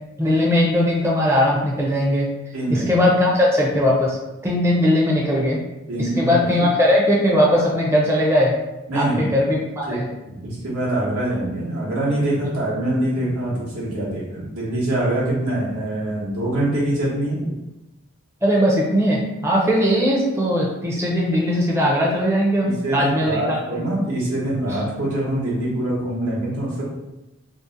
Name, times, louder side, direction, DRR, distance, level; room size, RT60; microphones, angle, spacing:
voice 1, 0.2-2.3 2.7-4.2 4.4-5.6 6.0-8.5 8.9-10.0 18.4-23.8 24.7-24.8, equal, 10° right, -4 dB, 0.4 m, -19 dB
voice 2, 2.5-2.9 5.9-6.6 8.9-9.3 9.9-10.0 10.3-17.4 22.6-26.8, right 1 dB, 80° right, -7 dB, 0.9 m, -24 dB
2.7 x 2.0 x 3.7 m, 0.99 s
head